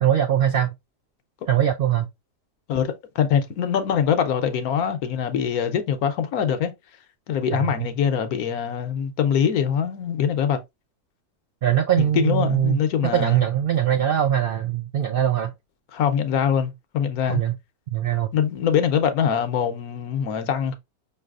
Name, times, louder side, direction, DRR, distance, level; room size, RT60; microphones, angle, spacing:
voice 1, 0.0-0.7 1.5-2.1 7.5-7.9 11.6-15.5 17.3-17.6 17.9-18.3, right 10 dB, 85° right, 0.5 m, -22 dB
voice 2, 2.7-6.7 7.3-10.6 12.0-13.4 15.9-17.4 18.3-20.8, left 8 dB, 75° left, 1.2 m, -23 dB
5.4 x 3.3 x 2.4 m
omnidirectional pair, 1.6 m